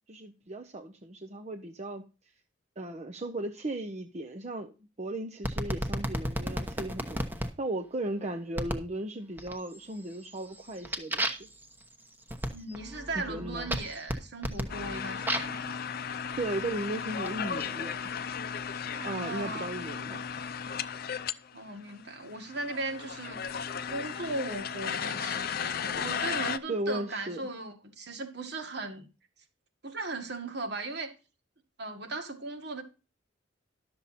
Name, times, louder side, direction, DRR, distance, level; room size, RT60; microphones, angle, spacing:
voice 1, 0.1-2.0 2.8-7.2 7.6-11.5 13.3-13.7 16.4-18.1 19.0-20.2 26.7-27.5, right 1 dB, 35° right, 0.7 m, -36 dB
sound 1, 5.4-7.5 8.6-8.9 9.4-9.9 10.2-15.6 16.4-17.7, equal, 10° right, 1.0 m, -34 dB
voice 2, 12.5-15.7 18.9-19.7 21.5-23.6 23.9-29.1 29.8-31.1 31.8-32.8, right 2 dB, 60° right, 1.8 m, -37 dB
sound 2, 14.7-21.3 21.6-21.7 21.8-26.6, left 7 dB, 50° left, 0.5 m, -35 dB
12.0 x 6.9 x 4.2 m
head